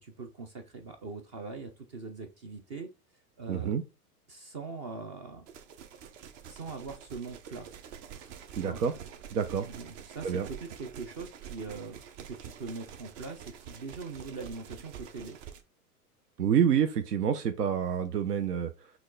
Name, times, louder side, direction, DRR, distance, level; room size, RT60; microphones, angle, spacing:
voice 1, 0.0-2.9 3.4-3.8 4.3-5.5 6.5-7.7 8.5-8.8 9.7-12.0 12.3-15.4, right 4 dB, 25° right, 7 dB, 0.3 m, -42 dB
voice 2, 3.5-3.8 8.6-8.9 9.3-9.7 10.2-10.5 16.4-18.9, right 8 dB, 85° right, 9 dB, 0.7 m, -28 dB
sound 1, 5.5-15.6, right 8 dB, 50° right, 0.9 m, -47 dB
6.0 x 2.3 x 3.7 m, 0.29 s
hypercardioid pair, 105°, 46 cm